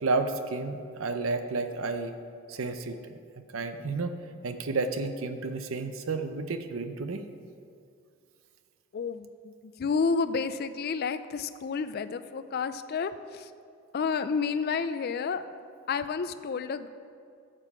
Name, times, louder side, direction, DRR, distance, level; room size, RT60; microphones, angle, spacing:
voice 1, 0.0-2.1 2.5-3.0 3.5-4.1 4.4-7.2, right 3 dB, 75° right, 8 dB, 0.7 m, -31 dB
voice 2, 8.9-13.5 13.9-15.4 15.9-16.9, left 5 dB, 50° left, 11 dB, 0.4 m, -30 dB
12.0 x 7.6 x 4.9 m, 2.4 s
head